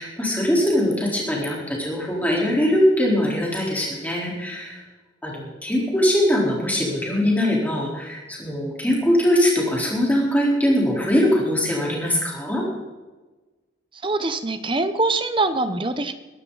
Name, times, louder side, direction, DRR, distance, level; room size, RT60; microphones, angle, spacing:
voice 1, 0.0-4.8 5.2-12.6, left 1 dB, 10° left, -4 dB, 4.0 m, -21 dB
voice 2, 14.0-16.1, right 2 dB, 25° right, 11 dB, 0.8 m, -23 dB
22.0 x 12.0 x 4.1 m, 1.2 s
head